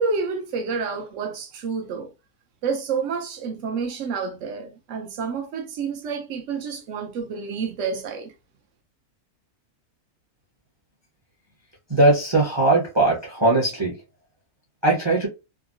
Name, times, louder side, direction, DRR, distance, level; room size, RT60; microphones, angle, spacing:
voice 1, 0.0-2.1 2.6-8.3, right 5 dB, 65° right, 0.8 m, -29 dB
voice 2, 11.9-13.9 14.8-15.3, right 2 dB, 25° right, 0.6 m, -19 dB
3.6 x 2.0 x 2.5 m
omnidirectional pair, 1.6 m